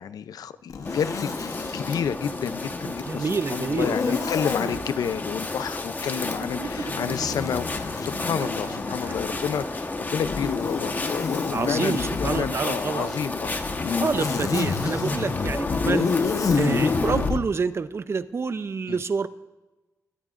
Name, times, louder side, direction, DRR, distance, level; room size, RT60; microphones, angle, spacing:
voice 1, 0.0-1.3 1.7-13.6 13.8-14.1 15.7-15.8 18.9-19.0, left 8 dB, 85° left, 13 dB, 0.5 m, -30 dB
Zipper (clothing), 0.7-2.1 3.7-4.8 6.2-9.5 10.2-12.5 13.4-17.4, left 5 dB, 60° left, 1.1 m, -28 dB
sound 1, 0.8-17.3, left 2 dB, 30° left, 1.2 m, -32 dB
voice 2, 3.0-4.2 11.5-13.2 14.0-16.1 16.5-19.3, right 5 dB, 45° right, 12 dB, 0.6 m, -28 dB
sound 2, 4.2-4.9 6.4-7.4 8.2-9.6, right 5 dB, 75° right, 2.0 m, -37 dB
22.5 x 12.5 x 2.5 m, 1.1 s
wide cardioid pair, 100°, 6 cm